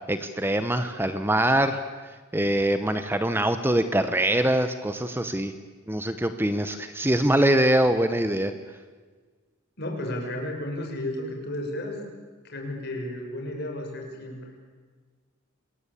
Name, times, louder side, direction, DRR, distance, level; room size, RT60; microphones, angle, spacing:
voice 1, 0.1-5.5 5.9-8.5, right 1 dB, 10° right, 9 dB, 0.9 m, -24 dB
voice 2, 9.8-12.0 12.4-14.5, left 1 dB, 50° left, 2 dB, 6.0 m, -33 dB
27.0 x 21.5 x 8.5 m, 1.4 s
head